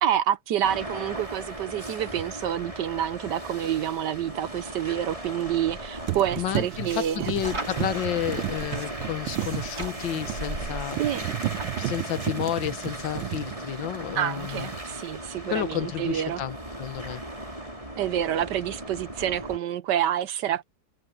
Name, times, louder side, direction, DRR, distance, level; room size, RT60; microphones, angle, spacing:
voice 1, 0.0-7.3 11.0-11.3 14.2-16.4 18.0-20.6, right 10 dB, 70° right, 1.3 m, -28 dB
sound 1, 0.6-19.6, right 1 dB, 15° right, 5.6 m, -38 dB
sound 2, 2.1-2.3 5.4-5.8 6.1-14.3 14.6-15.0, right 16 dB, 90° right, 1.4 m, -33 dB
sound 3, 5.4-12.3, right 2 dB, 50° right, 5.2 m, -40 dB
voice 2, 6.3-11.0 11.8-14.7 15.5-17.2, left 11 dB, 75° left, 1.8 m, -31 dB
omnidirectional pair, 2.1 m